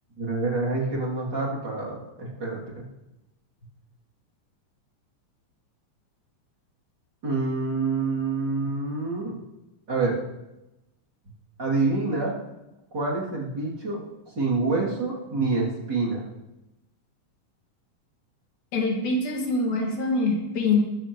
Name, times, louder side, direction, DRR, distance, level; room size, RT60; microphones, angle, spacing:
voice 1, 0.2-2.6 7.2-9.3 9.9-10.2 11.6-12.3 12.9-14.0 14.3-16.2, right 3 dB, 35° right, -5 dB, 3.2 m, -27 dB
voice 2, 18.7-20.8, left 3 dB, 65° left, 1 dB, 3.4 m, -24 dB
19.5 x 13.0 x 3.1 m, 0.97 s
omnidirectional pair, 3.7 m